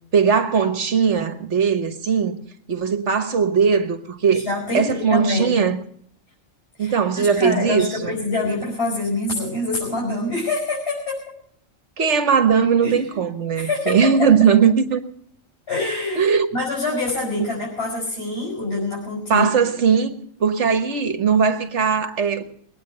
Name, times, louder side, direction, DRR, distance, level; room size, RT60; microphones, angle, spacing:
voice 1, 0.1-2.4 2.7-4.5 4.7-5.8 6.8-8.1 12.0-15.0 16.2-16.5 19.3-20.1 20.4-22.4, right 6 dB, 65° right, 1.5 m, -19 dB
voice 2, 4.3-5.7 6.8-11.2 12.8-13.2 13.5-14.3 15.7-19.5, left 2 dB, 55° left, 5.9 m, -26 dB
21.5 x 9.3 x 6.7 m
omnidirectional pair, 1.3 m